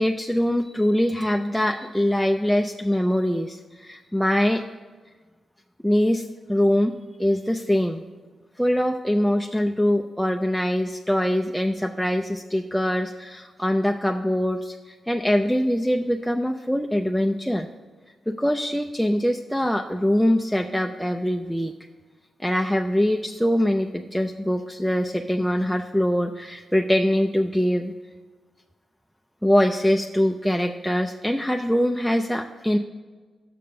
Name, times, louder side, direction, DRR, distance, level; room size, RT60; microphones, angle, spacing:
voice 1, 0.0-4.6 5.8-6.9 7.2-8.0 8.6-17.7 18.3-21.7 22.4-27.9 29.4-32.8, equal, ahead, 3 dB, 0.3 m, -23 dB
6.7 x 5.2 x 6.4 m, 1.4 s
wide cardioid pair, 125°, 0 cm